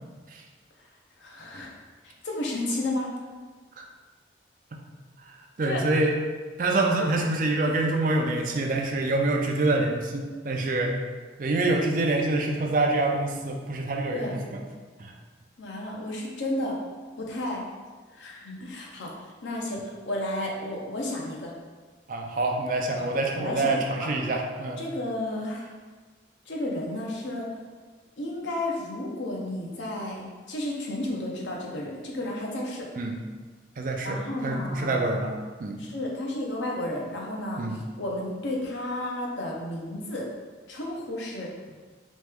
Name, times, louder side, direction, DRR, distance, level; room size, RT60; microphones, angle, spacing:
voice 1, 1.2-1.7 2.0-3.1 5.6-5.9 14.1-14.4 15.6-16.8 17.2-17.6 18.1-19.2 19.4-21.5 23.0-23.1 23.4-24.1 24.8-25.7 26.5-27.5 28.2-32.9 34.0-35.0 35.8-40.3 40.7-41.5, left 1 dB, 80° left, -2 dB, 0.8 m, -32 dB
voice 2, 5.6-6.1 6.6-11.0 11.4-14.6 15.0-15.1 22.1-24.8 33.0-33.2 33.8-35.3 35.6-35.8 37.6-37.8, right 2 dB, 45° right, 1 dB, 0.4 m, -26 dB
3.2 x 3.1 x 3.5 m, 1.4 s
head